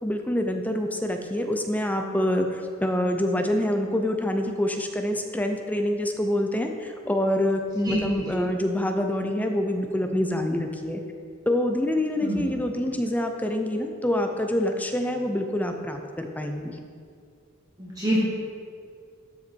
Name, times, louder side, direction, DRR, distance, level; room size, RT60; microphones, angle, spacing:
voice 1, 0.0-11.0 11.5-16.7, left 1 dB, 10° left, 4 dB, 0.6 m, -26 dB
voice 2, 17.8-18.2, right 1 dB, 20° right, -7 dB, 1.5 m, -26 dB
12.5 x 5.6 x 4.5 m, 2.2 s
head